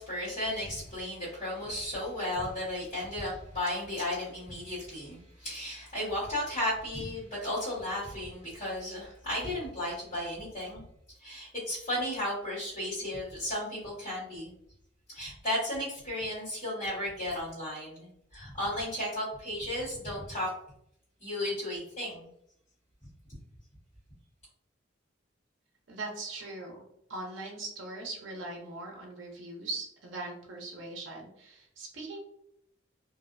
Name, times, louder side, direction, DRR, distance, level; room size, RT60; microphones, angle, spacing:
voice 1, 0.0-10.8 11.2-14.5 15.1-20.5 21.2-22.3, left 1 dB, 35° left, -13 dB, 1.3 m, -34 dB
voice 2, 25.9-26.8 27.1-32.2, right 2 dB, 75° right, 0 dB, 0.6 m, -40 dB
2.5 x 2.0 x 2.5 m, 0.73 s
head